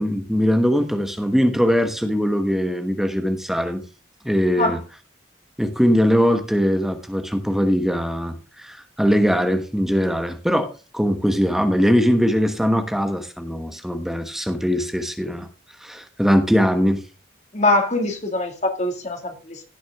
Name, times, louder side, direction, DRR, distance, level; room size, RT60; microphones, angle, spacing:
voice 1, 0.0-3.8 4.2-4.8 5.6-15.5 15.8-17.0, equal, ahead, 1.1 m, -21 dB
voice 2, 17.5-19.6, left 2 dB, 35° left, 2.3 m, -22 dB
17.0 x 6.2 x 3.6 m
head